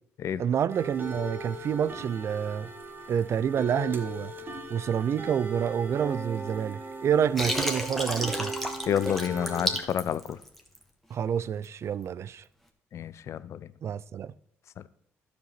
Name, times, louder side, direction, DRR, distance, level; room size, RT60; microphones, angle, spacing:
voice 1, 0.4-2.7 3.1-4.3 4.7-8.5 11.1-12.4 13.8-14.3, right 8 dB, 55° right, 0.4 m, -28 dB
sound 1, 0.7-9.8, right 2 dB, 40° right, 1.4 m, -38 dB
Water, 7.4-10.8, left 1 dB, 5° left, 1.7 m, -31 dB
voice 2, 8.9-10.4 12.9-13.7, left 9 dB, 60° left, 0.5 m, -29 dB
12.0 x 5.1 x 5.8 m
supercardioid pair, 60°, 6 cm